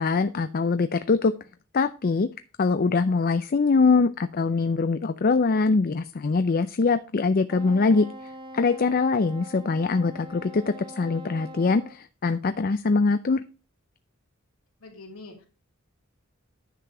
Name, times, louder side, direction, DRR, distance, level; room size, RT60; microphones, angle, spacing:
voice 1, 0.0-1.3 1.7-2.3 2.6-8.1 8.5-13.4, left 4 dB, 45° left, 11 dB, 0.5 m, -23 dB
Wind instrument woodwind instrument, 7.5-12.0, right 1 dB, 20° right, 1.2 m, -43 dB
voice 2, 14.8-15.5, left 2 dB, 80° left, 0 dB, 2.8 m, -44 dB
10.0 x 6.8 x 3.8 m, 0.35 s
head